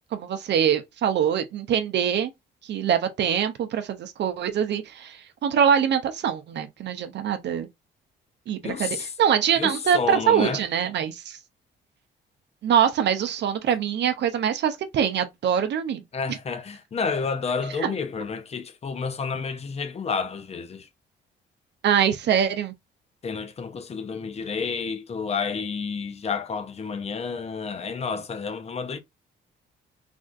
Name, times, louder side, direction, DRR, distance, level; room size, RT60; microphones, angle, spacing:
voice 1, 0.1-2.3 2.7-7.7 8.5-11.4 12.6-16.0 17.8-17.9 21.8-22.7, right 8 dB, 60° right, 0.6 m, -24 dB
voice 2, 8.6-9.1 9.5-10.6 16.1-20.9 23.2-29.0, left 5 dB, 30° left, 0.6 m, -30 dB
3.4 x 2.3 x 2.5 m
cardioid pair, 90°, 20 cm